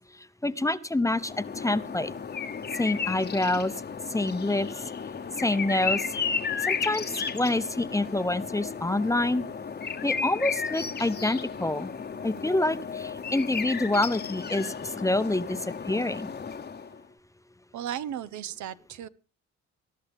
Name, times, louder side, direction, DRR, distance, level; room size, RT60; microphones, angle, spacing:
voice 1, 0.4-2.1 2.8-3.7 4.1-4.7 5.4-6.0 6.7-7.0 7.3-9.4 10.0-11.9 12.2-15.6 15.9-16.3, left 2 dB, 10° left, 13 dB, 0.7 m, -27 dB
sound 1, 1.1-17.0, left 5 dB, 35° left, 1.0 m, -34 dB
voice 2, 17.7-19.1, right 10 dB, 70° right, 15 dB, 0.7 m, -35 dB
20.5 x 11.5 x 3.5 m, 0.34 s
cardioid pair, 90°, 30 cm